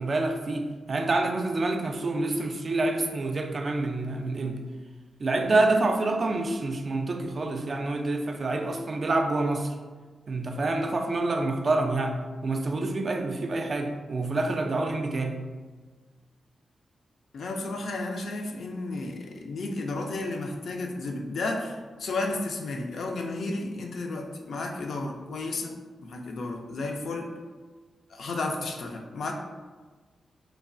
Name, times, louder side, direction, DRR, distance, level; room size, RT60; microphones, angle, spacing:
voice 1, 0.0-4.6 5.2-9.7 10.3-15.4, right 2 dB, 55° right, 4 dB, 0.3 m, -27 dB
voice 2, 17.3-25.7 26.0-27.3 28.1-29.3, left 2 dB, 70° left, 2 dB, 0.3 m, -32 dB
3.0 x 2.1 x 2.5 m, 1.4 s
supercardioid pair, 45°, 0 cm